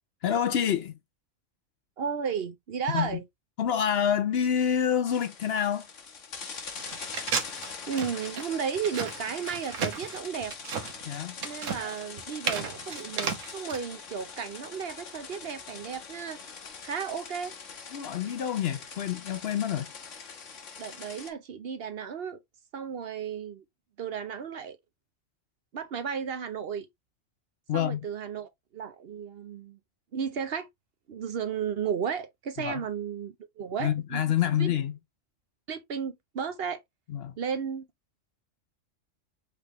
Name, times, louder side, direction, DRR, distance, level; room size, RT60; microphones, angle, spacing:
voice 1, 0.2-1.0 2.9-3.2 3.6-5.9 11.1-11.4 17.9-19.9 27.7-28.0 32.6-32.8 33.8-34.9 37.1-37.3, left 9 dB, 60° left, 0.8 m, -27 dB
voice 2, 2.0-3.2 7.9-10.5 11.4-16.4 16.8-17.5 20.8-22.4 22.7-23.6 24.0-24.8 25.7-26.9 27.7-29.8 30.1-30.7 31.1-34.2 34.6-34.7 35.7-36.8 37.4-37.8, right 7 dB, 55° right, 0.8 m, -34 dB
sound 1, 5.1-21.3, left 5 dB, 75° left, 1.5 m, -43 dB
sound 2, 6.8-13.8, right 6 dB, 80° right, 1.3 m, -34 dB
5.1 x 3.3 x 2.9 m
omnidirectional pair, 1.3 m